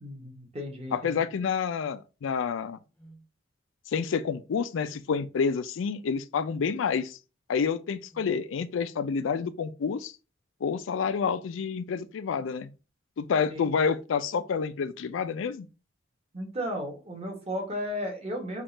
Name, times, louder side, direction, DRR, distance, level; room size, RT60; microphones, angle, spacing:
voice 1, 0.0-1.2 13.5-13.7 16.3-18.6, equal, 30° right, 1.0 m, -34 dB
voice 2, 0.9-2.8 3.9-7.2 7.5-10.1 10.6-12.7 13.2-15.7, left 6 dB, 70° left, 0.4 m, -28 dB
sound 1, 3.0-3.2 4.7-5.0 6.4-6.7 8.1-8.4, right 2 dB, 5° left, 0.6 m, -51 dB
3.6 x 2.4 x 3.9 m
head